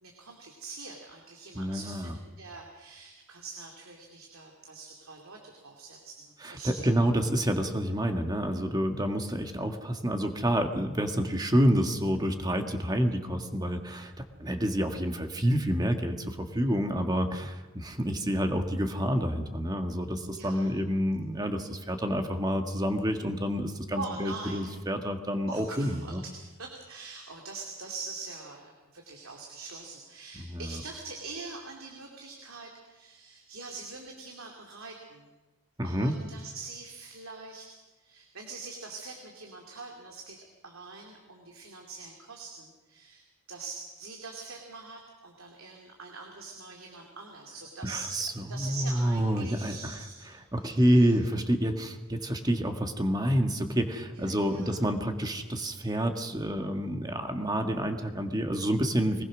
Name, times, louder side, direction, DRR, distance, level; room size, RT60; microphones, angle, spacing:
voice 1, 0.0-7.0 20.2-20.7 24.0-24.6 25.5-35.3 35.8-37.7 38.0-43.2 43.5-48.1 48.5-51.2 54.1-54.8, right 4 dB, 80° right, 1 dB, 2.6 m, -44 dB
voice 2, 1.5-2.1 6.4-26.2 30.4-30.8 35.8-36.1 47.8-50.0 50.3-59.2, equal, 20° right, 5 dB, 1.6 m, -28 dB
22.5 x 19.5 x 6.2 m, 1.2 s
head